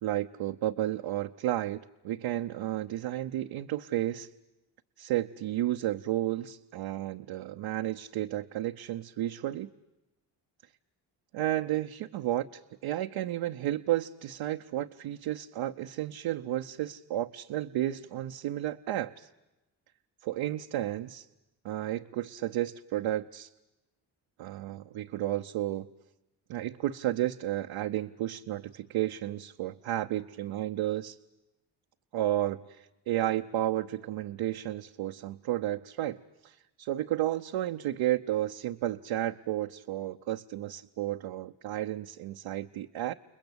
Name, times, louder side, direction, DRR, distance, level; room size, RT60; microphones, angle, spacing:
voice 1, 0.0-4.3 5.0-9.7 11.3-19.3 20.2-21.3 21.6-23.5 24.4-25.9 26.5-31.2 32.1-43.1, right 13 dB, 75° right, 4 dB, 0.9 m, -32 dB
30.0 x 21.0 x 8.1 m, 0.98 s
supercardioid pair, 55°, 48 cm